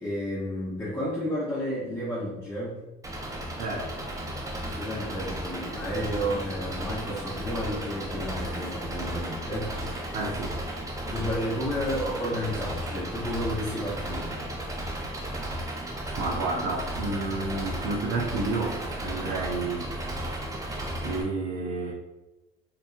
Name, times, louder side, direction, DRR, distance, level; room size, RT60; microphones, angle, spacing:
voice 1, 0.0-2.8 4.6-10.2 11.1-14.3, equal, 15° left, -11 dB, 0.9 m, -32 dB
Engine, 3.0-21.2, right 1 dB, 20° right, 0.5 m, -34 dB
voice 2, 3.6-3.9 10.1-10.6 16.2-19.9 21.0-21.9, right 3 dB, 85° right, -4 dB, 0.6 m, -30 dB
2.9 x 2.6 x 2.5 m, 1.0 s
cardioid pair, 110°, 17 cm